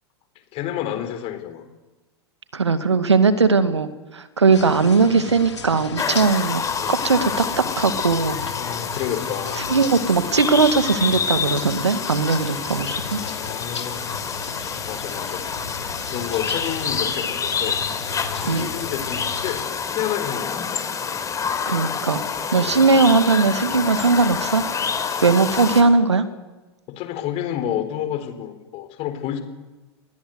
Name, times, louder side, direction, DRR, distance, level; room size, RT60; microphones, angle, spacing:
voice 1, 0.5-1.7 6.8-7.0 8.6-9.6 13.2-14.0 14.6-15.5 16.0-20.8 22.6-22.8 26.9-29.4, left 11 dB, 45° left, 9 dB, 4.3 m, -30 dB
voice 2, 2.5-6.6 6.9-8.4 9.6-13.2 18.4-18.7 21.7-22.2 22.5-24.7 25.2-26.3, right 4 dB, 85° right, 11 dB, 2.1 m, -19 dB
sound 1, 4.5-19.6, left 5 dB, 85° left, 3.2 m, -36 dB
sound 2, 6.0-25.8, left 6 dB, 25° left, 3.7 m, -28 dB
29.0 x 20.5 x 8.1 m, 1.1 s
figure-of-eight pair, 90°, 14 cm